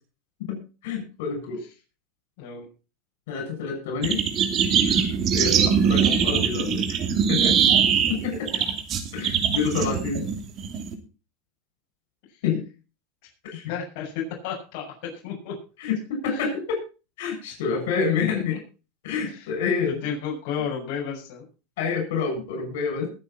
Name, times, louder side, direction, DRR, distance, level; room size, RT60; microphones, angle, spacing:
voice 1, 0.4-1.6 3.3-4.2 4.9-5.0 5.3-7.0 7.3-7.6 8.1-8.5 9.1-10.2 12.4-12.6 13.4-13.7 15.8-16.8 17.2-18.6 19.0-20.0 21.8-23.1, left 5 dB, 80° left, 3 dB, 7.3 m, -28 dB
sound 1, 4.0-10.9, right 7 dB, 35° right, 2.9 m, -22 dB
voice 2, 13.7-15.5 16.3-16.4 18.5-18.6 19.3-19.5 20.0-21.4, left 7 dB, 60° left, -2 dB, 6.8 m, -33 dB
21.0 x 8.8 x 4.3 m, 0.34 s
supercardioid pair, 145°, 0 cm